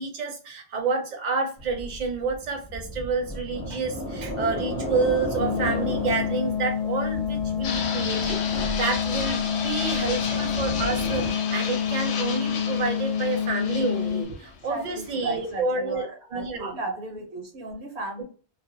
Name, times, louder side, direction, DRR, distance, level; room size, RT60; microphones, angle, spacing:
voice 1, 0.0-16.9 18.2-18.3, right 4 dB, 50° right, 4 dB, 0.6 m, -29 dB
sound 1, 1.6-11.3, equal, 30° left, 0.7 m, -34 dB
sound 2, 5.4-14.2, left 8 dB, 55° left, 0.4 m, -28 dB
Fixed-wing aircraft airplane, 7.6-15.6, left 5 dB, 75° left, 0.8 m, -34 dB
voice 2, 14.7-18.2, right 1 dB, 75° right, 1 dB, 0.9 m, -36 dB
2.4 x 2.1 x 2.5 m, 0.39 s
omnidirectional pair, 1.1 m